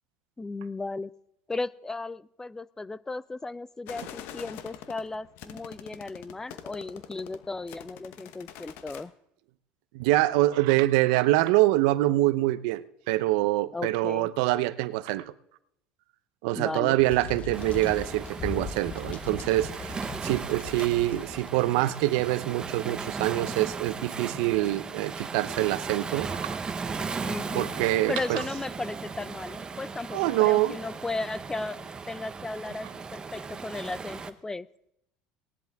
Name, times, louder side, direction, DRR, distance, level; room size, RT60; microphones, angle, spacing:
voice 1, 0.4-1.1 1.5-9.1 13.7-14.3 16.5-17.0 27.2-27.7 28.1-34.7, left 3 dB, 15° left, 19 dB, 0.4 m, -35 dB
sound 1, 3.9-9.0, left 10 dB, 65° left, 1.1 m, -45 dB
voice 2, 9.9-15.3 16.4-26.6 27.5-28.4 30.1-30.8, right 17 dB, 80° right, 15 dB, 0.7 m, -25 dB
sound 2, 17.0-21.5, left 5 dB, 40° left, 1.4 m, -39 dB
Waves surf, 17.5-34.3, right 5 dB, 20° right, 0.9 m, -37 dB
18.5 x 10.5 x 3.5 m, 0.78 s
supercardioid pair, 115°, 4 cm